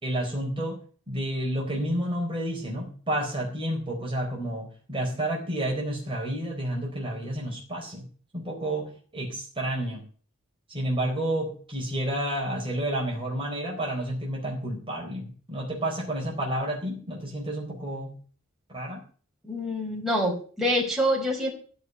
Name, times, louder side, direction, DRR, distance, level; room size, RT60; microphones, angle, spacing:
voice 1, 0.0-0.8 1.1-8.0 8.3-10.0 10.7-18.1 18.7-19.0, right 1 dB, 25° right, -2 dB, 4.1 m, -30 dB
voice 2, 19.4-21.5, equal, ahead, -3 dB, 5.0 m, -26 dB
16.0 x 5.8 x 9.3 m, 0.41 s
head